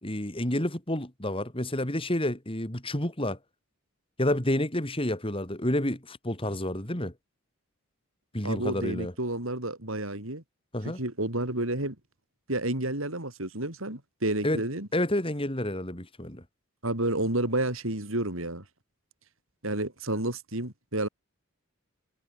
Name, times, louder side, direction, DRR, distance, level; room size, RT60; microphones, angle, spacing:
voice 1, 0.0-3.4 4.2-7.1 8.3-9.1 10.7-11.0 14.4-14.6 14.9-16.4, left 1 dB, 25° left, 3.4 m, -29 dB
voice 2, 8.4-10.4 11.0-12.0 12.5-14.9 16.8-18.6 19.6-21.1, right 1 dB, 70° right, 5.2 m, -30 dB
head